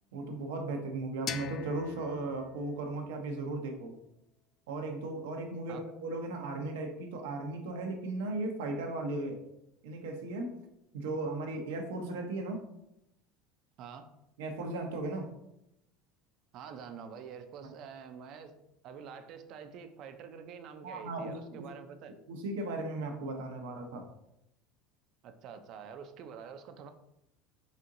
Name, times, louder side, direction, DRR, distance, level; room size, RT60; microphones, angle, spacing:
voice 1, 0.1-4.0 4.7-9.4 9.8-10.5 10.9-12.6 14.4-15.3 17.6-17.7 20.8-21.7 22.3-24.0, right 2 dB, 90° right, 4 dB, 0.8 m, -36 dB
sound 1, 1.3-4.1, left 8 dB, 40° left, 0.3 m, -44 dB
voice 2, 13.8-14.1 16.5-18.5 18.8-22.1 25.2-26.9, right 7 dB, 55° right, 9 dB, 0.5 m, -47 dB
4.3 x 3.7 x 2.6 m, 0.84 s
supercardioid pair, 120°, 0 cm